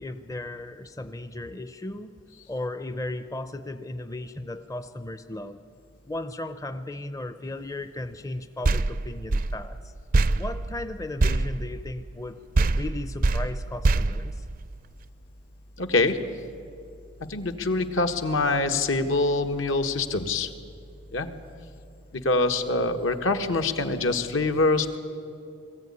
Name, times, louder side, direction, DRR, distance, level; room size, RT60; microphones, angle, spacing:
voice 1, 0.0-2.1 2.5-5.6 6.1-9.9 10.3-12.4 12.8-14.4, left 2 dB, 15° left, 10 dB, 0.5 m, -35 dB
sound 1, 8.6-12.3 12.5-15.0, right 2 dB, 45° right, 0.5 m, -25 dB
voice 2, 15.8-16.2 17.3-20.5 21.1-21.3 22.2-25.0, left 2 dB, 75° left, 6 dB, 1.5 m, -24 dB
21.5 x 14.5 x 9.7 m, 2.5 s
head